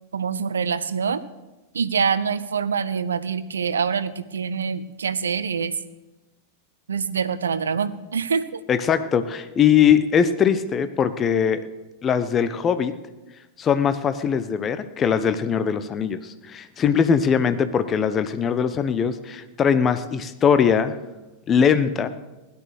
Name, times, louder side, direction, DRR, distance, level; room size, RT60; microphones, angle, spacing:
voice 1, 0.1-1.2 1.7-5.8 6.9-8.6, right 6 dB, 70° right, 15 dB, 0.8 m, -25 dB
voice 2, 8.7-11.6 12.0-12.9 13.6-20.9 21.5-22.1, left 7 dB, 25° left, 11 dB, 1.0 m, -21 dB
16.5 x 11.5 x 6.5 m, 1.1 s
figure-of-eight pair, 90°, 0 cm